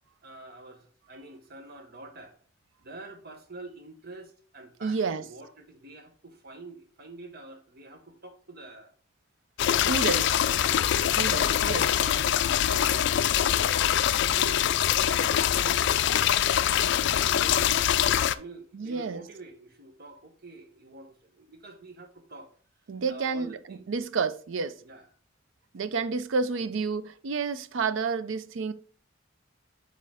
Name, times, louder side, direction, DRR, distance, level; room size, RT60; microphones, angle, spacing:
voice 1, 0.2-2.4 2.8-8.9 9.8-11.7 12.0-14.0 14.3-15.3 15.6-16.3 16.8-22.5 23.1-23.8 24.8-25.1, right 2 dB, 55° right, 1.1 m, -46 dB
voice 2, 4.8-5.2 9.9-10.3 11.2-11.9 18.7-19.2 22.9-24.8 25.7-28.7, right 4 dB, 75° right, 0.5 m, -30 dB
sound 1, 9.6-18.3, left 10 dB, 65° left, 0.3 m, -24 dB
7.6 x 3.7 x 3.5 m
head